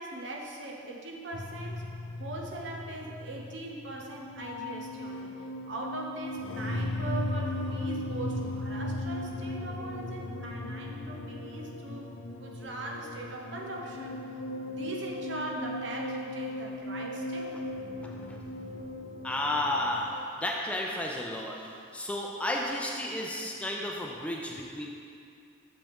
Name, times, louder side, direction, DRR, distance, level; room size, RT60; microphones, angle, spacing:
voice 1, 0.0-1.8 2.2-5.3 5.6-12.1 12.3-14.2 14.6-17.5, right 2 dB, 75° right, -1 dB, 0.9 m, -40 dB
sound 1, 1.3-20.2, left 1 dB, 85° left, 0.5 m, -37 dB
voice 2, 18.0-18.4 19.2-24.9, left 1 dB, 5° left, -1 dB, 0.4 m, -33 dB
6.4 x 5.7 x 3.5 m, 2.4 s
head